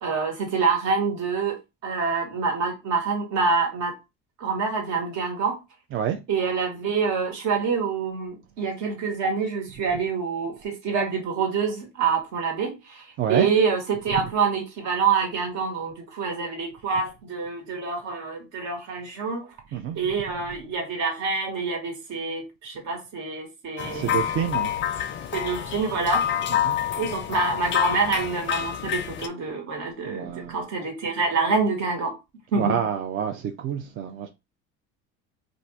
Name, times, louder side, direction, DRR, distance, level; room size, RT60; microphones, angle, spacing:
voice 1, 0.0-3.9 4.4-5.6 6.3-19.5 19.9-24.2 25.3-26.3 26.9-32.2 32.5-32.7, right 5 dB, 60° right, 1.5 m, -26 dB
voice 2, 13.2-13.5 19.7-20.0 23.9-25.2 26.6-26.8 30.1-30.6 32.6-34.3, right 9 dB, 40° right, 0.4 m, -28 dB
sound 1, 23.8-29.3, left 10 dB, 35° left, 0.4 m, -27 dB
2.6 x 2.5 x 3.2 m
supercardioid pair, 110°, 32 cm